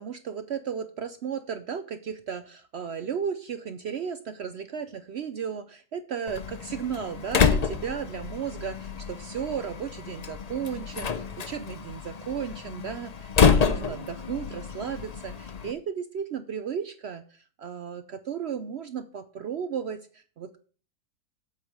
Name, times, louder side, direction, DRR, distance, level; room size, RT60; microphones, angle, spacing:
voice 1, 0.0-20.6, right 7 dB, 65° right, 10 dB, 0.6 m, -34 dB
Slam, 6.3-15.7, left 6 dB, 70° left, 0.3 m, -28 dB
8.0 x 5.3 x 6.2 m, 0.41 s
omnidirectional pair, 1.7 m